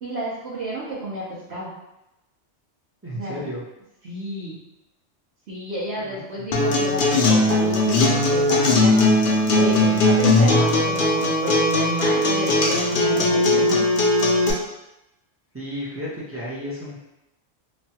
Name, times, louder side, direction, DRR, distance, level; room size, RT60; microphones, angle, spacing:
voice 1, 0.0-1.7 3.1-3.4 4.0-4.6 5.5-9.1 9.5-13.8, right 2 dB, 65° right, -10 dB, 1.0 m, -30 dB
voice 2, 3.0-3.6 6.0-6.5 15.5-17.0, equal, 15° right, -8 dB, 0.5 m, -33 dB
Acoustic guitar, 6.5-14.5, left 2 dB, 60° left, 0.6 m, -19 dB
3.0 x 2.2 x 2.7 m, 0.91 s
omnidirectional pair, 1.2 m